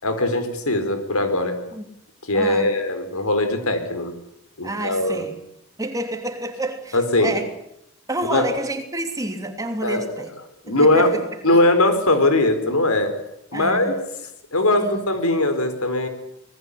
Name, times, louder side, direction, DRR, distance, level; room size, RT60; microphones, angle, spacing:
voice 1, 0.0-1.5 2.3-4.1 4.6-5.2 6.9-7.3 8.3-8.5 9.8-10.1 10.7-11.1 11.4-13.1 13.5-14.0 14.5-16.1, left 2 dB, 85° left, 9 dB, 4.7 m, -20 dB
voice 2, 2.3-2.7 4.6-5.4 5.8-7.5 8.1-10.3 10.7-11.2 13.5-14.0 14.8-15.0, right 1 dB, 15° right, 5 dB, 3.0 m, -29 dB
26.5 x 20.5 x 8.6 m, 0.80 s
head